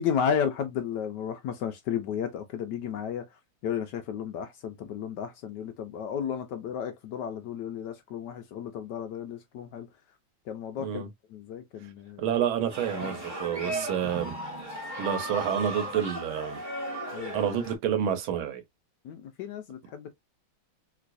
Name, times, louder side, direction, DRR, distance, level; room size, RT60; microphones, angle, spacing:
voice 1, 0.0-3.2 3.6-9.9 10.5-11.0 11.3-12.3 13.0-13.1 13.7-13.9 17.1-17.5 19.0-20.1, left 8 dB, 75° left, 1.0 m, -33 dB
voice 2, 10.8-11.1 12.2-14.3 15.0-16.6 17.3-18.6, right 9 dB, 80° right, 1.6 m, -29 dB
sound 1, 12.7-17.8, right 1 dB, 25° right, 1.6 m, -36 dB
3.2 x 3.0 x 2.5 m
omnidirectional pair, 2.2 m